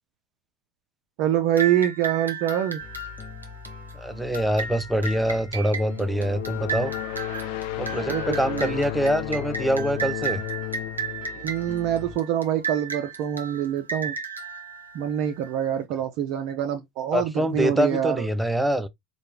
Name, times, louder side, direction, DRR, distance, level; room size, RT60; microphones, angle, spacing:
voice 1, 1.2-2.8 7.9-8.8 11.4-14.1 14.9-18.3, right 10 dB, 55° right, 0.5 m, -25 dB
sound 1, 1.6-15.7, right 5 dB, 85° right, 0.7 m, -35 dB
sound 2, 2.8-12.2, left 6 dB, 30° left, 0.9 m, -43 dB
voice 2, 4.0-6.9 7.8-10.4 17.1-18.9, equal, 5° right, 0.6 m, -25 dB
sound 3, 5.7-12.4, left 16 dB, 55° left, 0.4 m, -34 dB
4.3 x 2.4 x 3.3 m
figure-of-eight pair, 70°, 0 cm